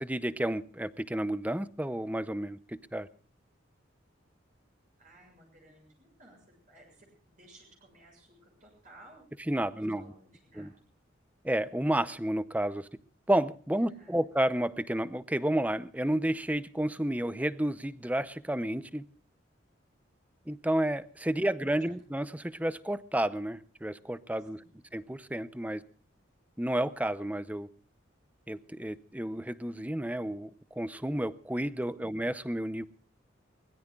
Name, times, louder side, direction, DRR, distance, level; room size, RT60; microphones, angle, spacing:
voice 1, 0.0-3.1 9.5-10.0 10.6-10.7 11.4-12.9 13.3-19.0 20.5-24.6 24.9-25.8 26.6-27.7 28.5-32.9, right 1 dB, 10° right, 0.6 m, -31 dB
voice 2, 5.0-9.4 9.7-10.9 13.7-14.2 21.8-21.9 24.5-24.8 31.9-32.1, right 1 dB, 40° right, 7.0 m, -58 dB
24.0 x 20.5 x 2.4 m
head